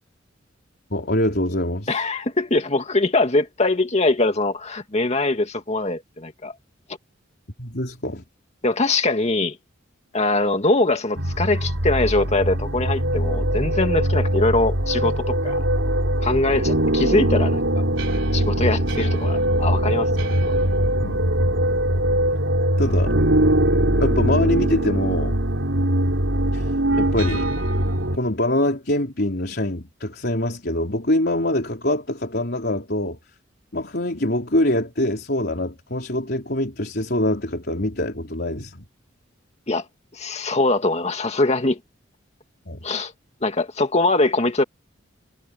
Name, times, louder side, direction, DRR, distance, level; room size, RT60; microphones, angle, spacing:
voice 1, 0.9-2.0 7.6-8.2 19.0-19.1 21.0-21.3 22.8-23.2 24.0-25.4 26.5-27.5 28.1-33.2 33.7-38.9 42.7-42.8, left 1 dB, 55° left, 4.0 m, -24 dB
voice 2, 1.9-6.5 8.6-9.6 10.1-15.6 16.2-17.6 18.3-20.1 20.5-20.6 39.7-39.8 40.1-41.8 42.8-43.1 43.4-44.6, left 2 dB, 35° left, 2.2 m, -22 dB
sound 1, 11.2-28.2, right 1 dB, 70° right, 4.8 m, -21 dB
head